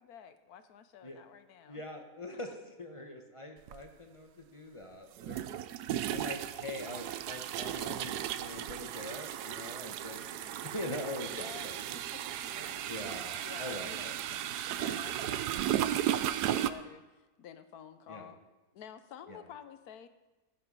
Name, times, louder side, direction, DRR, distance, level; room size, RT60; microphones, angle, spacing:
voice 1, 0.0-1.8 2.3-2.4 10.4-10.7 11.3-11.9 12.1-12.9 13.4-18.4 18.7-20.1, left 8 dB, 75° left, 10 dB, 1.2 m, -51 dB
voice 2, 1.7-5.4 6.1-12.0 12.9-14.2 18.1-18.3 19.3-19.4, left 1 dB, 25° left, 3 dB, 0.8 m, -43 dB
sound 1, 3.7-3.8 5.2-16.7, right 11 dB, 80° right, 1.1 m, -35 dB
14.0 x 6.8 x 5.4 m, 1.1 s
omnidirectional pair, 1.7 m